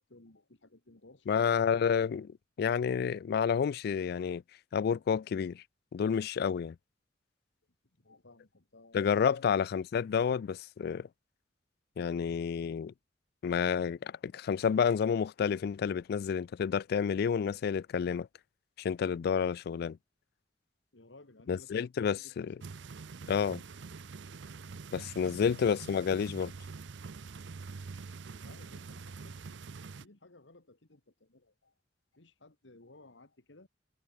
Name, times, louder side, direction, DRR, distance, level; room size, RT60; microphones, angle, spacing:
voice 1, 0.1-1.5 8.0-9.5 20.9-22.5 25.1-25.8 28.3-29.4 29.9-31.7 32.1-33.7, left 2 dB, 90° left, 2.0 m, -57 dB
voice 2, 1.3-4.4 4.7-5.6 5.9-6.8 8.9-11.1 12.0-12.9 13.4-18.3 18.8-20.0 21.5-22.5 23.3-23.6 24.9-26.5, left 7 dB, 60° left, 0.3 m, -30 dB
sound 1, 22.6-30.0, right 4 dB, 75° right, 0.6 m, -45 dB
head